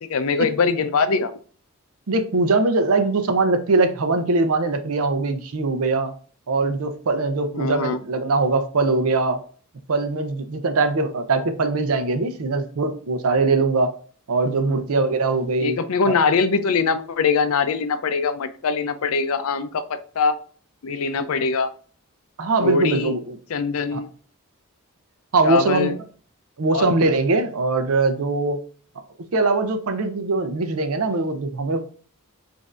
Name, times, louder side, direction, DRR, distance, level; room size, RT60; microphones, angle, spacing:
voice 1, 0.0-1.3 7.5-8.0 14.6-14.8 15.6-20.4 20.8-21.7 22.6-23.2 23.5-24.1 25.4-26.0 26.7-26.9, left 4 dB, 75° left, 0.4 m, -22 dB
voice 2, 2.1-6.1 6.5-9.4 9.9-13.9 14.3-15.8 16.1-16.2 22.4-23.4 23.9-24.0 25.3-26.0 26.6-28.6 29.3-31.9, right 3 dB, 80° right, 0.6 m, -21 dB
5.2 x 2.7 x 2.4 m
head